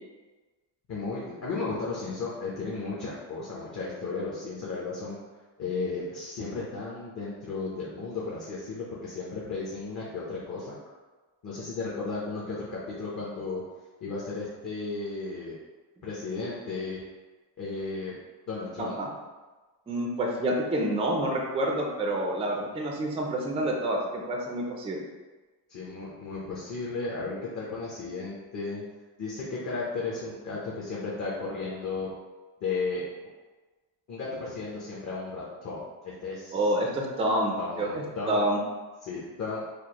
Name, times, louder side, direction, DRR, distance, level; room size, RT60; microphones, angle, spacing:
voice 1, 0.9-5.2 5.6-10.8 11.4-13.6 14.0-15.5 16.0-17.0 17.6-18.2 18.5-19.0 25.7-28.8 29.2-32.1 32.6-33.0 34.1-36.6 37.6-38.4 39.0-39.6, left 3 dB, 40° left, -6 dB, 0.8 m, -34 dB
voice 2, 18.8-19.1 19.9-25.0 36.5-38.6, right 1 dB, 15° right, 0 dB, 0.4 m, -28 dB
4.9 x 2.1 x 2.9 m, 1.3 s
cardioid pair, 135°, 45 cm